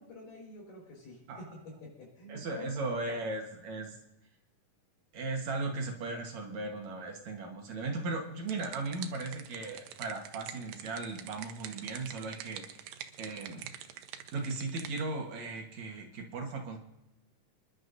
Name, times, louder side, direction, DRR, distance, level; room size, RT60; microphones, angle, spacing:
voice 1, 0.0-2.7, left 1 dB, 75° left, -1 dB, 6.5 m, -49 dB
voice 2, 2.3-4.0 5.1-12.8 13.2-13.7 14.3-16.8, right 3 dB, 60° right, 1 dB, 2.6 m, -37 dB
sound 1, 8.4-15.0, right 10 dB, 85° right, 2.4 m, -46 dB
27.0 x 11.0 x 2.7 m, 0.90 s
omnidirectional pair, 3.8 m